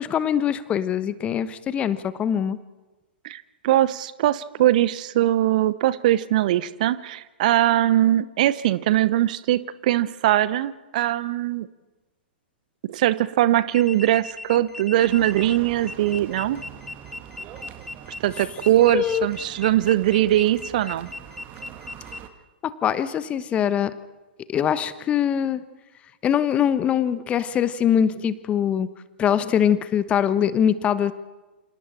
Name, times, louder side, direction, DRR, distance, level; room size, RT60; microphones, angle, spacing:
voice 1, 0.0-2.6 18.9-19.3 22.6-23.9 24.5-25.6 26.2-28.9 29.2-31.1, left 9 dB, 20° left, 14 dB, 1.2 m, -23 dB
voice 2, 3.2-11.7 12.9-16.6 18.2-21.1, right 13 dB, 45° right, 17 dB, 1.0 m, -21 dB
sound 1, 13.7-22.2, left 2 dB, 5° left, 1.3 m, -38 dB
sound 2, 15.1-22.3, right 10 dB, 30° right, 1.9 m, -43 dB
28.5 x 27.0 x 4.4 m, 1.2 s
figure-of-eight pair, 110°, 6 cm